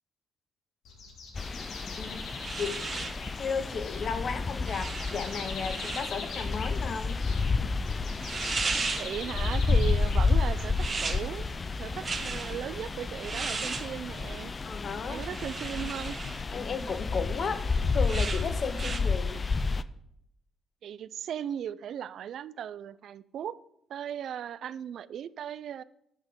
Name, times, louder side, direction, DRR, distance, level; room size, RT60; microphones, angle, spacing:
sound 1, 0.9-10.7, left 4 dB, 80° left, 1.9 m, -43 dB
sound 2, 1.3-19.8, left 4 dB, 30° left, 0.4 m, -31 dB
sound 3, 2.1-19.0, right 4 dB, 35° right, 1.0 m, -38 dB
voice 1, 2.6-3.0 3.4-7.2 14.6-15.2 16.2-17.7 17.9-19.4, left 5 dB, 50° left, 11 dB, 0.9 m, -34 dB
voice 2, 9.0-11.5 11.8-14.5 15.1-16.2 20.8-23.6 23.9-25.8, right 9 dB, 70° right, 17 dB, 0.4 m, -37 dB
9.8 x 5.9 x 5.2 m, 0.78 s
cardioid pair, 90°, 0 cm